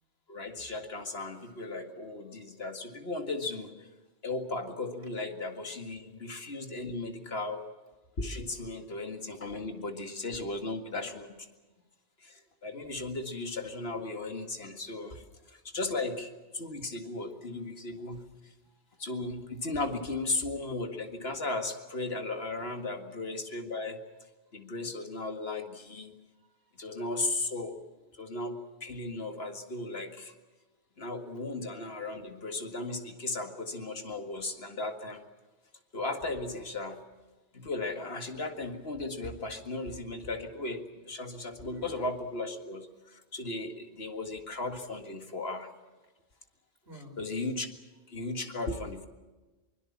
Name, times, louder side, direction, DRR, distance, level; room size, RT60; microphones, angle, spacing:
voice 1, 0.3-3.9 4.2-7.7 8.2-11.4 12.2-15.2 15.5-18.2 19.0-24.0 24.5-26.1 26.8-27.8 28.2-30.3 31.0-35.2 35.9-37.0 37.5-45.7 47.2-47.7 48.1-49.1, left 2 dB, 65° left, 6 dB, 2.2 m, -36 dB
voice 2, 1.2-1.9 2.3-2.4 5.0-5.1 8.5-8.8 12.3-12.4 15.4-15.7 18.6-19.0 24.5-24.9 26.3-27.0 41.4-41.9 44.0-44.1 46.6-47.2, equal, 70° right, 5 dB, 3.9 m, -58 dB
23.5 x 22.0 x 7.3 m, 1.2 s
omnidirectional pair, 1.1 m